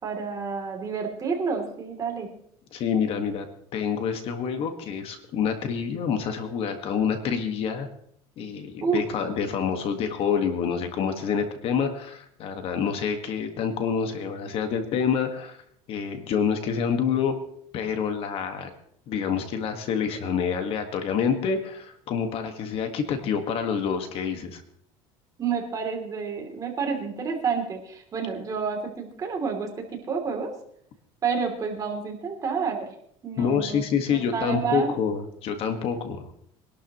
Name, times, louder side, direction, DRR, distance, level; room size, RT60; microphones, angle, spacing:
voice 1, 0.0-2.3 8.8-9.0 25.4-30.5 31.2-32.9 33.2-33.8 34.1-34.9, right 5 dB, 25° right, 2 dB, 3.0 m, -29 dB
voice 2, 2.7-3.5 3.7-7.9 8.4-15.6 15.9-17.4 17.7-18.7 19.1-24.6 33.4-36.2, left 6 dB, 45° left, 6 dB, 1.7 m, -27 dB
23.5 x 12.0 x 3.1 m, 0.67 s
cardioid pair, 140°, 13 cm